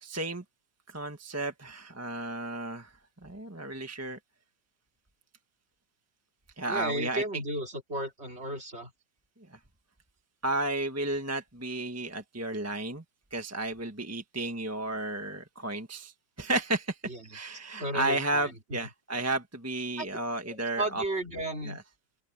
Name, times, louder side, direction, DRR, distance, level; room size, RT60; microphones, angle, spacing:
voice 1, 0.0-0.4 0.9-2.9 3.2-4.2 6.6-7.2 9.5-9.6 10.4-13.0 13.3-17.0 17.3-21.0 21.6-21.8, right 2 dB, 10° right, 1.4 m, -33 dB
voice 2, 6.7-8.9 17.1-17.4 17.8-18.5 20.0-20.1 20.8-21.8, right 1 dB, 35° right, 3.1 m, -33 dB
open air
omnidirectional pair, 2.0 m